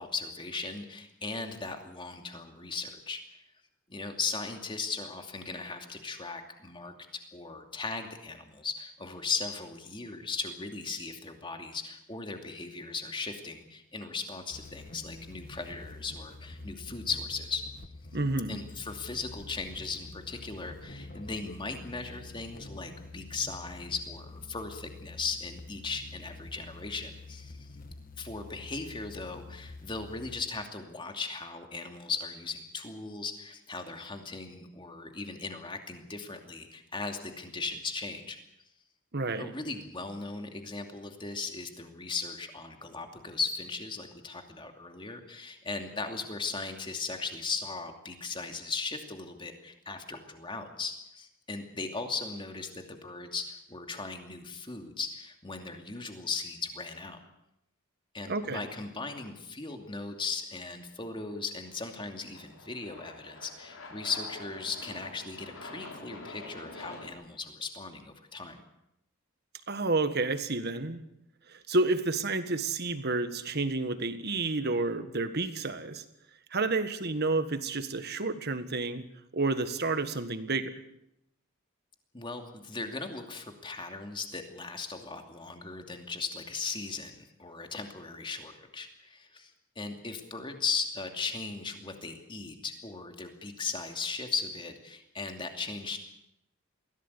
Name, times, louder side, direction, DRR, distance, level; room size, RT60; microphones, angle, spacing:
voice 1, 0.0-3.4 3.9-6.9 7.3-17.6 18.5-27.7 28.2-38.4 39.4-57.2 58.1-68.6 82.1-96.0, left 4 dB, 25° left, 5 dB, 2.6 m, -37 dB
sound 1, 14.5-30.4, left 2 dB, 40° left, 1.4 m, -47 dB
voice 2, 18.1-18.6 39.1-39.5 58.3-58.6 69.7-71.0 71.5-76.0 76.5-79.1 79.3-80.7, right 3 dB, 50° right, 10 dB, 1.6 m, -30 dB
Aircraft, 61.4-67.1, left 2 dB, 75° left, 4.5 m, -47 dB
22.5 x 16.5 x 8.2 m, 0.83 s
head